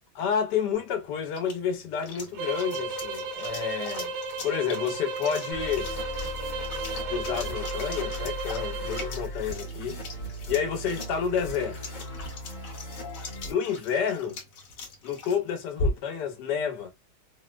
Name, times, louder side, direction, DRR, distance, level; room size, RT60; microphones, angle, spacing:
voice 1, 0.1-4.1 4.4-5.9 7.1-10.0 10.5-11.8 13.4-14.4 15.0-16.9, left 7 dB, 80° left, 1.3 m, -29 dB
sound 1, 0.7-16.3, left 2 dB, 60° left, 1.2 m, -40 dB
sound 2, 2.3-9.2, right 3 dB, 70° right, 1.3 m, -34 dB
sound 3, 5.5-13.5, left 1 dB, 40° left, 0.7 m, -38 dB
3.7 x 2.1 x 2.3 m
omnidirectional pair, 1.8 m